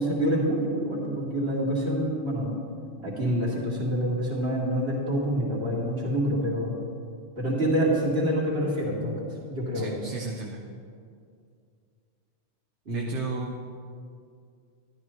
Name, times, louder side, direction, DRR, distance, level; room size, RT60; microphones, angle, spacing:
voice 1, 0.0-2.5 3.0-6.7 7.4-9.2 9.5-10.0 12.9-13.1, equal, 70° right, -6 dB, 2.7 m, -26 dB
voice 2, 9.7-10.6 12.9-13.8, right 4 dB, 85° right, 0 dB, 1.1 m, -34 dB
13.0 x 11.5 x 3.1 m, 2.3 s
omnidirectional pair, 1.2 m